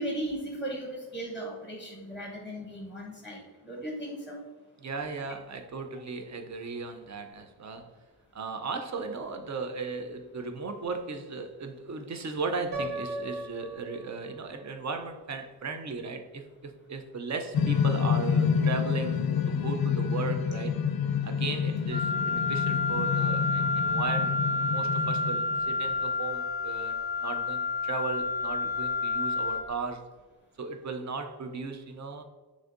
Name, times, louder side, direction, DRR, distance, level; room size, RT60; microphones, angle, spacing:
voice 1, 0.0-4.4, right 1 dB, 5° right, -2 dB, 0.8 m, -36 dB
voice 2, 4.8-7.9 8.3-19.2 19.5-20.7 21.2-24.4 24.7-30.1 30.6-32.2, right 4 dB, 40° right, 7 dB, 0.5 m, -36 dB
Piano, 12.7-14.7, right 1 dB, 90° right, 0.9 m, -37 dB
sound 1, 17.5-26.0, left 7 dB, 55° left, 0.5 m, -28 dB
Wind instrument woodwind instrument, 21.9-29.7, left 3 dB, 65° right, 1.3 m, -29 dB
6.2 x 2.6 x 2.5 m, 1.2 s
wide cardioid pair, 105°, 42 cm